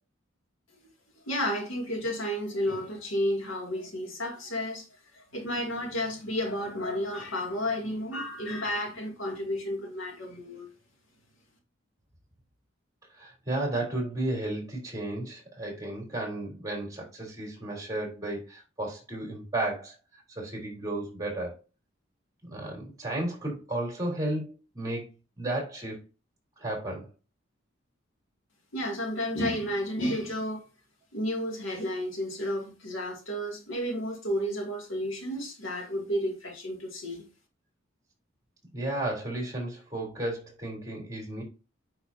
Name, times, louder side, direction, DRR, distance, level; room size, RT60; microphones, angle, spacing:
voice 1, 1.3-4.8 5.1-10.7 28.7-30.6 31.1-37.3, equal, 80° left, 2.5 m, -32 dB
voice 2, 13.1-21.6 22.4-25.1 25.4-26.0 26.6-27.1 38.7-41.4, right 1 dB, 20° right, 3.8 m, -33 dB
9.5 x 5.6 x 2.8 m
head